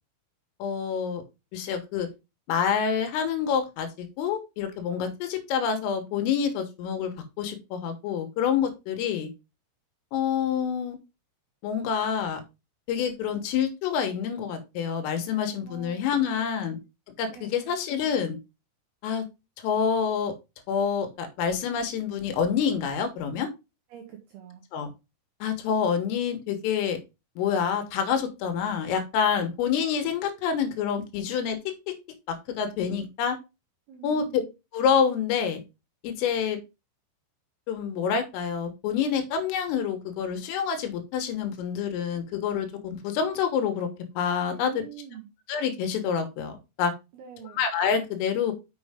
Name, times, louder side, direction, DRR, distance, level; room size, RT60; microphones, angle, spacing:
voice 1, 0.6-1.2 1.5-2.1 2.5-9.3 10.1-11.0 11.6-12.4 12.9-16.8 17.2-18.4 19.0-19.3 19.6-20.3 20.7-23.5 24.7-24.9 25.4-27.0 27.4-31.6 31.9-32.0 32.3-33.4 34.0-34.4 34.7-35.6 36.0-36.6 37.7-43.9 44.2-44.7 45.5-46.9 47.6-48.5, left 7 dB, 80° left, 7 dB, 3.7 m, -27 dB
voice 2, 15.6-16.4 17.3-17.7 23.9-24.7 33.9-34.5 44.5-45.3 47.1-47.6, right 8 dB, 70° right, 1 dB, 2.5 m, -45 dB
6.9 x 6.5 x 3.5 m, 0.25 s
omnidirectional pair, 6.0 m